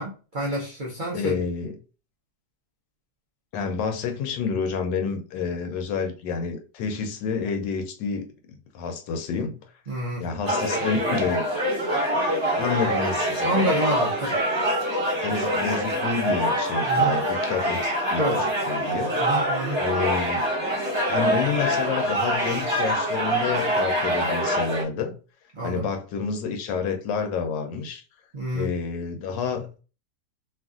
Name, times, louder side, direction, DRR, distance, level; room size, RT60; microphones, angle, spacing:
voice 1, 0.0-1.4 9.9-10.2 13.4-14.4 16.9-17.1 18.2-18.4 19.2-19.8 25.5-25.9 28.3-28.7, right 1 dB, 85° right, 0.4 m, -28 dB
voice 2, 1.1-1.8 3.5-9.6 10.2-11.4 12.5-13.7 15.2-19.1 19.8-20.5 21.1-25.1 25.6-28.0 28.5-29.7, left 5 dB, 85° left, 1.3 m, -29 dB
sound 1, 10.4-24.8, right 1 dB, 20° right, 0.8 m, -25 dB
3.1 x 2.4 x 2.3 m
omnidirectional pair, 1.9 m